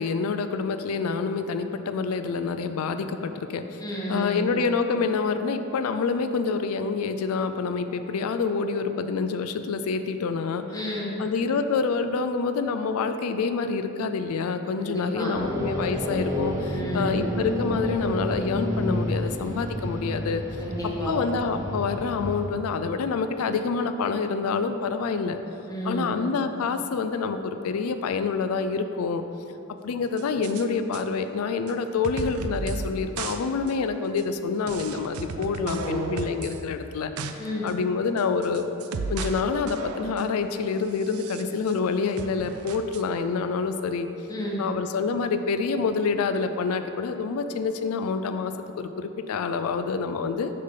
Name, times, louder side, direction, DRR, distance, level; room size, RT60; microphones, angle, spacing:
voice 1, 0.0-3.8 4.1-10.8 11.2-20.4 21.1-25.4 25.8-29.2 29.8-37.1 37.6-38.7 39.1-44.1 44.6-50.5, left 5 dB, 85° left, 9 dB, 0.4 m, -27 dB
voice 2, 3.8-4.4 10.7-11.2 14.8-15.3 16.6-17.1 20.6-21.1 25.7-26.1 35.6-36.1 37.4-37.7 44.3-44.6, equal, 15° left, -4 dB, 1.1 m, -31 dB
sound 1, 15.3-22.4, equal, 15° right, 0.8 m, -30 dB
sound 2, 30.2-30.6 30.9-31.0 31.7-31.8 32.0-32.9 33.2-33.4 33.7-33.8 34.2-34.3 34.7-36.6 36.9-37.3 37.7-37.8 38.2-39.4 39.7-40.3 40.9-41.8 42.2-43.0, right 4 dB, 85° right, 0.4 m, -35 dB
6.4 x 5.6 x 3.8 m, 2.8 s
head